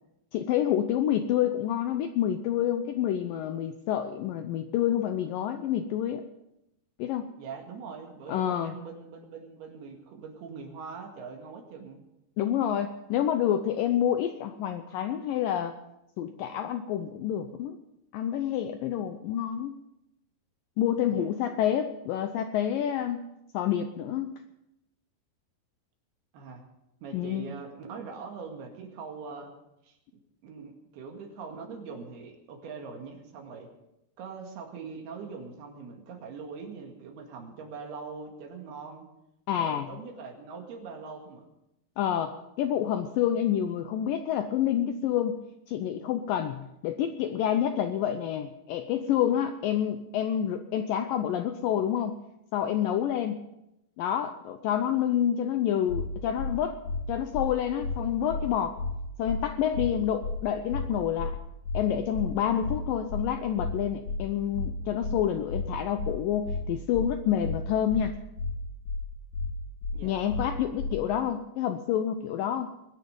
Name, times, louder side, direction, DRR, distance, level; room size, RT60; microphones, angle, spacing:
voice 1, 0.3-6.2 7.0-7.3 8.3-8.8 12.4-15.7 16.2-17.8 18.1-19.8 20.8-23.2 23.5-24.3 27.1-27.5 39.5-39.9 42.0-45.4 45.7-52.2 52.5-53.4 54.0-56.8 57.1-58.8 59.2-61.4 61.7-68.1 70.0-72.7, left 10 dB, 80° left, 8 dB, 2.0 m, -28 dB
voice 2, 7.4-12.0 21.1-21.3 26.3-26.7 27.0-29.5 29.8-30.0 30.4-33.7 34.2-39.1 39.6-41.5 69.9-70.2, right 5 dB, 70° right, 2 dB, 3.9 m, -42 dB
sound 1, 55.9-56.0 56.4-56.5 56.8-57.0 57.3-57.5 57.8-58.0 58.3-58.4 58.8-58.9 59.2-59.4 59.7-59.9 60.2-60.4 60.7-60.8 61.2-61.3 61.6-61.8 62.1-62.3 62.6-62.8 63.1-63.2 63.6-63.7 64.0-64.2 64.5-64.7 65.0-65.2 65.5-65.6 66.0-66.1 66.4-66.6 66.9-67.1 67.4-67.6 67.9-68.0 68.4-68.5 68.8-69.0 69.3-69.5 69.8-70.0 70.3-70.4 70.8-70.9, left 3 dB, 50° left, 2.8 m, -31 dB
22.0 x 10.0 x 5.3 m, 0.88 s
omnidirectional pair, 4.7 m